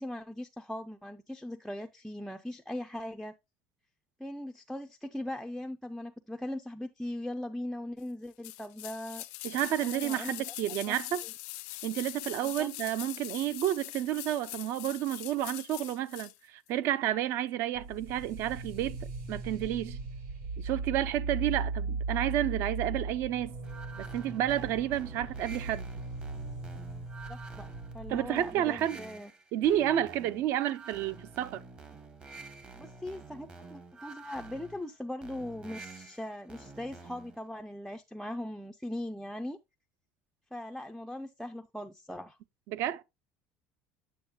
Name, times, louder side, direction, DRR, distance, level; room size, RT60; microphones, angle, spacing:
voice 1, 0.0-3.4 4.2-9.2 9.8-10.4 10.9-11.0 11.2-11.3 12.4-12.7 27.3-27.7 27.9-29.3 32.7-39.6 40.5-42.4, left 1 dB, ahead, 0.4 m, -40 dB
sound 1, 8.4-16.4 16.7-16.8, left 21 dB, 80° left, 0.5 m, -42 dB
voice 2, 9.4-11.2 11.8-19.0 19.3-20.0 20.6-23.6 24.0-25.9 28.1-29.0 29.5-31.6 42.7-43.0, right 12 dB, 55° right, 0.5 m, -30 dB
sound 2, 17.7-28.4, right 4 dB, 80° right, 4.7 m, -38 dB
sound 3, 23.6-37.4, right 4 dB, 20° right, 0.9 m, -49 dB
8.6 x 7.1 x 2.2 m
cardioid pair, 160°, 5 cm